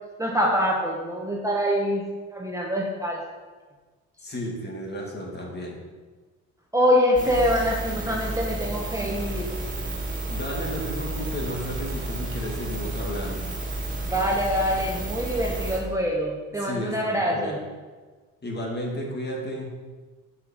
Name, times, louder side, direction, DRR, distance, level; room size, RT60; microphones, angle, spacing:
voice 1, 0.2-2.0 2.3-3.2 6.7-9.5 14.1-17.6, equal, 10° right, -2 dB, 1.3 m, -24 dB
voice 2, 4.2-5.8 10.3-13.5 16.6-17.6 18.4-19.7, equal, 35° left, -1 dB, 2.1 m, -33 dB
sound 1, 7.2-15.8, right 2 dB, 25° right, 2.1 m, -31 dB
5.9 x 5.6 x 6.5 m, 1.3 s
cardioid pair, 90°, 30 cm